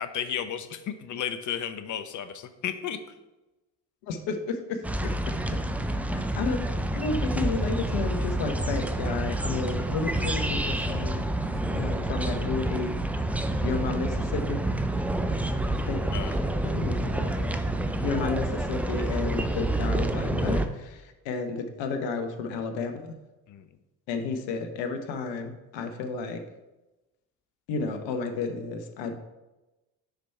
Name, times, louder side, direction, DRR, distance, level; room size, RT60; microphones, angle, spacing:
voice 1, 0.0-3.0 10.2-10.4 11.5-11.6 16.1-16.4 23.5-23.7, left 9 dB, 40° left, 10 dB, 0.7 m, -33 dB
voice 2, 4.0-5.3 5.8-6.6 6.9-11.2 11.7-13.0 13.6-14.6 15.7-17.5 18.0-23.0 24.1-26.4 27.7-29.1, left 4 dB, 60° left, 5 dB, 1.0 m, -32 dB
sound 1, 4.8-20.7, right 1 dB, 5° right, 0.3 m, -28 dB
5.0 x 4.5 x 5.5 m, 1.0 s
hypercardioid pair, 55°, 49 cm